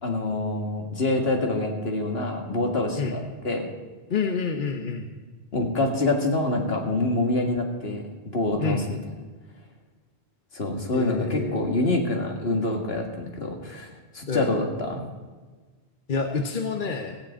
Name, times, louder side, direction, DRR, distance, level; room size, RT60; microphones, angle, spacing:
voice 1, 0.0-3.7 5.5-9.0 10.5-15.0, left 2 dB, 65° left, 2 dB, 2.2 m, -26 dB
voice 2, 4.1-5.1 8.6-8.8 10.9-11.6 14.3-14.5 16.1-17.2, left 5 dB, 50° left, 4 dB, 1.1 m, -28 dB
15.0 x 7.7 x 8.6 m, 1.3 s
omnidirectional pair, 1.1 m